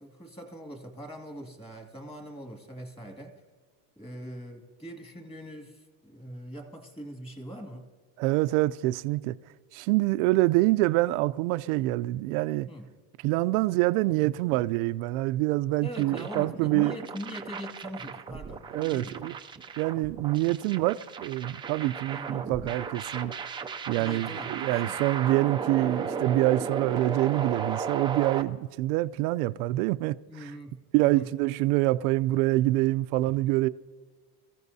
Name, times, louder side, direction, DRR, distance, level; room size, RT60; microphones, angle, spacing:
voice 1, 0.0-3.3 4.0-7.9 12.7-12.9 15.8-19.2 22.1-22.5 24.0-25.1 30.3-31.3, equal, 10° left, 2.2 m, -42 dB
voice 2, 8.2-9.4 9.7-12.7 13.2-16.9 18.7-19.3 19.8-23.3 23.9-30.2 30.4-30.5 30.9-33.7, right 18 dB, 70° right, 0.6 m, -26 dB
sound 1, 15.9-28.4, right 6 dB, 10° right, 0.4 m, -35 dB
25.0 x 14.5 x 2.7 m
supercardioid pair, 130°, 44 cm